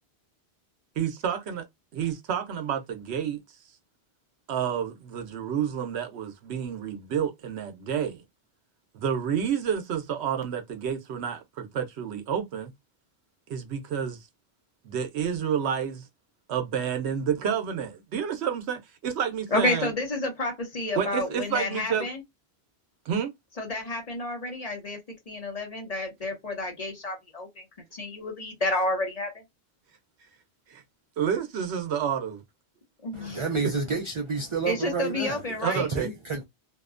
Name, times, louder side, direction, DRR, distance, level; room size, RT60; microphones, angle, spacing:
voice 1, 1.0-1.7 1.9-3.4 4.5-8.2 8.9-12.7 13.5-14.2 14.8-16.1 16.5-19.9 20.9-22.1 23.1-23.3 30.7-30.8 31.2-32.4 33.6-33.7 35.6-36.1, right 8 dB, 85° right, 0.9 m, -29 dB
voice 2, 19.5-22.2 23.6-25.0 25.3-27.5 27.9-29.3 33.0-33.4 34.6-35.9, left 2 dB, 40° left, 0.8 m, -30 dB
voice 3, 33.1-35.5 35.7-36.4, right 4 dB, 45° right, 0.4 m, -30 dB
2.7 x 2.1 x 2.4 m
omnidirectional pair, 1.1 m